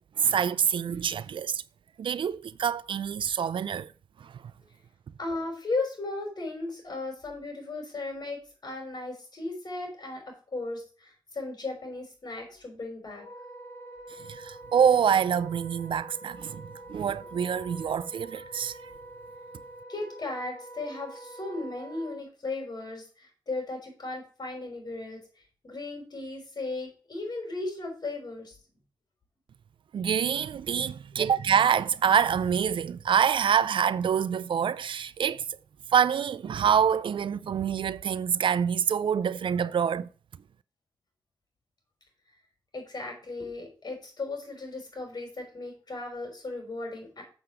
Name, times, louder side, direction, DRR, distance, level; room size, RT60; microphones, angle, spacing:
voice 1, 0.2-1.6 2.0-3.9 4.2-4.4 14.2-18.9 29.9-35.4 35.9-40.1, right 8 dB, 80° right, 0.5 m, -26 dB
voice 2, 5.2-10.2 10.5-13.3 19.9-28.6 42.7-47.2, left 2 dB, 55° left, 5.4 m, -36 dB
Wind instrument woodwind instrument, 13.1-22.2, right 1 dB, 30° left, 3.6 m, -46 dB
7.9 x 7.1 x 4.9 m
cardioid pair, 65°, 8 cm